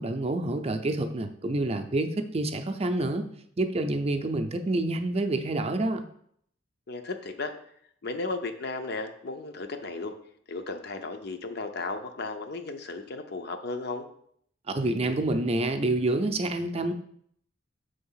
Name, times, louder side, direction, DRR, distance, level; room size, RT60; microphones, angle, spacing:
voice 1, 0.0-3.2 3.6-6.1 14.7-16.9, right 2 dB, 35° right, 7 dB, 0.5 m, -28 dB
voice 2, 6.9-7.5 8.0-10.1 10.5-14.1, left 3 dB, 60° left, 7 dB, 0.7 m, -35 dB
6.1 x 3.4 x 5.6 m, 0.66 s
head